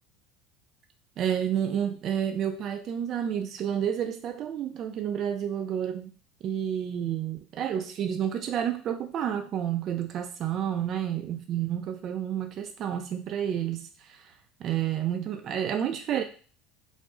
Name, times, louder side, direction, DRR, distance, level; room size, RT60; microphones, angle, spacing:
voice 1, 1.2-6.1 6.4-14.3 14.6-16.2, right 9 dB, 50° right, 5 dB, 0.3 m, -30 dB
2.4 x 2.0 x 3.6 m, 0.39 s
supercardioid pair, 105°, 0 cm